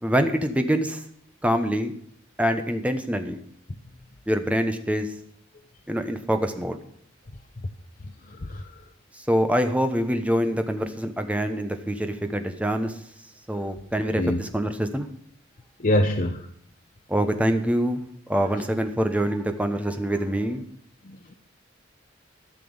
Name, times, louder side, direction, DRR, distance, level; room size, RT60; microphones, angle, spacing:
voice 1, 0.0-1.0 1.4-1.9 2.4-3.4 4.3-5.1 5.9-6.8 9.3-12.9 13.5-15.1 17.1-18.0 18.3-20.6, equal, 5° right, 7 dB, 1.0 m, -25 dB
voice 2, 8.3-8.8 14.2-14.4 15.8-16.5 21.0-21.3, left 1 dB, 45° left, 6 dB, 0.7 m, -25 dB
13.0 x 6.0 x 8.8 m, 0.64 s
head